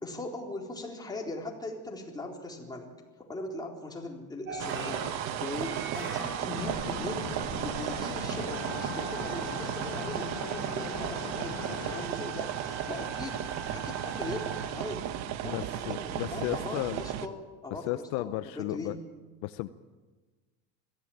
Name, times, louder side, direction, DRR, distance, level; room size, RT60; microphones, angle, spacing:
voice 1, 0.0-2.9 3.3-15.2 15.4-19.0, left 2 dB, 10° left, 0 dB, 3.9 m, -40 dB
sound 1, 4.5-14.7, right 4 dB, 35° right, 6.7 m, -42 dB
sound 2, 4.6-17.3, right 11 dB, 50° right, 1.3 m, -35 dB
sound 3, 6.5-12.1, left 8 dB, 85° left, 2.2 m, -41 dB
voice 2, 15.4-17.0 17.9-19.0 19.4-19.7, left 16 dB, 65° left, 12 dB, 0.8 m, -34 dB
21.5 x 15.0 x 8.8 m, 1.3 s
cardioid pair, 135°, 34 cm